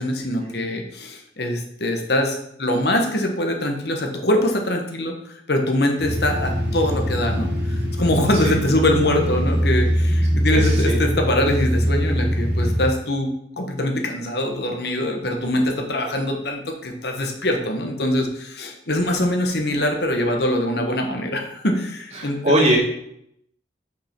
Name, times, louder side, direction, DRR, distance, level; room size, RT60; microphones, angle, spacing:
voice 1, 0.0-22.6, left 1 dB, 60° left, 3 dB, 1.2 m, -23 dB
sound 1, 6.0-12.8, equal, 65° right, 1.9 m, -22 dB
voice 2, 10.5-11.0 22.1-22.8, right 1 dB, 35° right, -3 dB, 2.5 m, -21 dB
6.0 x 5.5 x 5.8 m, 0.74 s
head